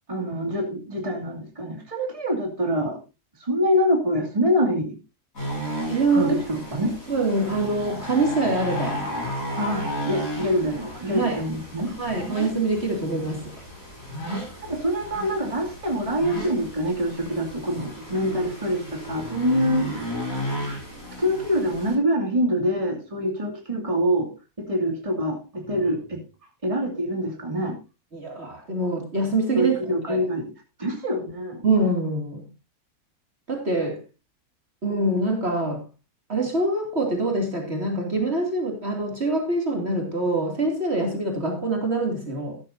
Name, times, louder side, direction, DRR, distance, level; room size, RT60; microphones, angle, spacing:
voice 1, 0.1-3.0 3.4-5.0 6.1-6.9 9.6-12.0 14.6-20.2 21.2-24.3 24.6-26.2 26.6-27.8 29.5-30.4 30.8-31.6, equal, 20° right, 0 dB, 2.7 m, -25 dB
sound 1, 5.4-21.9, equal, 60° left, 8.5 m, -34 dB
voice 2, 5.9-6.6 7.1-9.0 11.1-11.4 11.8-13.5 14.2-14.5 28.1-29.8 30.1-30.2 31.6-32.4 33.5-34.0 34.8-35.8 36.3-42.6, right 2 dB, 45° right, 2 dB, 2.9 m, -25 dB
14.0 x 12.5 x 2.7 m, 0.28 s
omnidirectional pair, 1.6 m